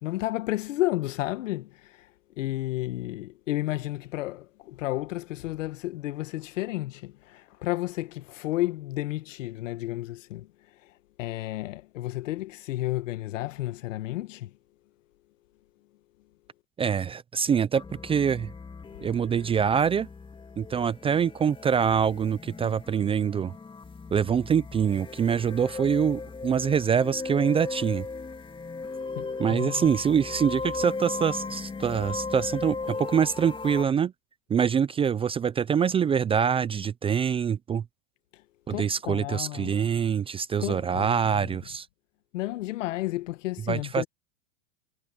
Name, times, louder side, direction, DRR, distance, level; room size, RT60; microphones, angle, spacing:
voice 1, 0.0-2.1 2.4-10.5 10.8-10.9 11.2-14.5 29.1-29.8 38.3-38.4 38.7-39.9 40.6-41.6 42.3-44.1, left 16 dB, 75° left, 1.6 m, -32 dB
voice 2, 16.8-18.5 19.0-20.1 20.6-23.5 24.1-28.1 29.4-34.1 34.5-37.8 38.7-41.9 43.7-44.0, right 7 dB, 15° right, 0.5 m, -25 dB
sound 1, 17.7-33.9, left 4 dB, 15° left, 2.3 m, -37 dB
hypercardioid pair, 125°, 38 cm